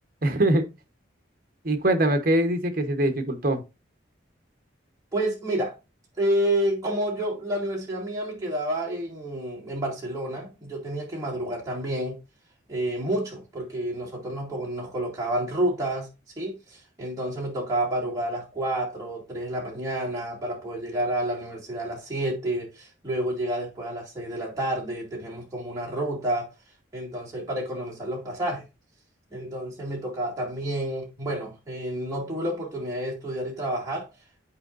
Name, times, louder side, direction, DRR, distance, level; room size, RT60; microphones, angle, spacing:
voice 1, 0.2-0.7 1.6-3.6, right 1 dB, 50° right, 1.0 m, -22 dB
voice 2, 5.1-5.7 6.2-12.2 12.7-26.5 26.9-28.6 29.3-34.1, right 1 dB, 20° right, 2.2 m, -29 dB
8.8 x 4.7 x 2.5 m
head